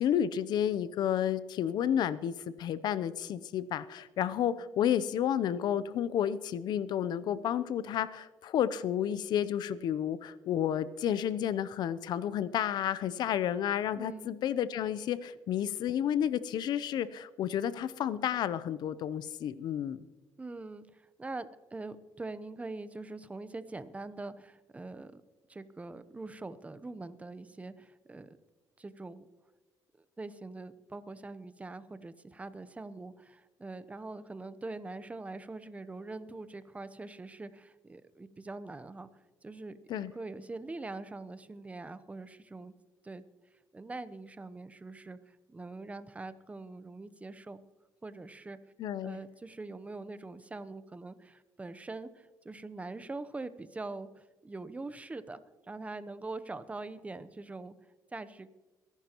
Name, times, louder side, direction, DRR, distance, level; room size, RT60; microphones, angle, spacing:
voice 1, 0.0-20.1 39.9-40.1 48.8-49.2, left 10 dB, 70° left, 16 dB, 0.6 m, -31 dB
voice 2, 13.9-14.3 20.4-25.2 25.5-28.4 28.8-29.3 30.2-39.1 39.4-42.7 43.0-43.2 43.7-47.6 48.0-48.6 49.0-55.4 55.7-57.7 58.1-58.5, right 3 dB, 20° right, 13 dB, 0.8 m, -43 dB
23.0 x 11.5 x 3.0 m, 1.2 s
cardioid pair, 95°, 8 cm